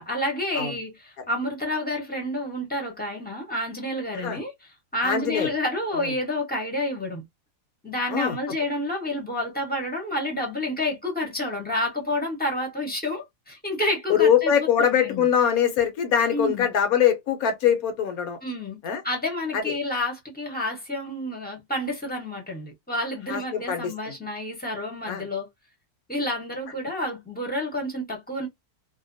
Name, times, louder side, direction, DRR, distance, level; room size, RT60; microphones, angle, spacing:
voice 1, 0.0-4.5 4.9-7.2 7.8-15.2 16.3-16.7 18.4-18.8 19.0-25.5 26.1-28.5, left 1 dB, 10° left, 0.7 m, -29 dB
voice 2, 5.0-5.5 6.0-6.1 8.1-8.3 14.1-18.4 18.8-19.0 19.5-19.8 23.3-24.1 25.1-25.2, left 8 dB, 65° left, 1.1 m, -23 dB
2.7 x 2.1 x 2.5 m
omnidirectional pair, 1.8 m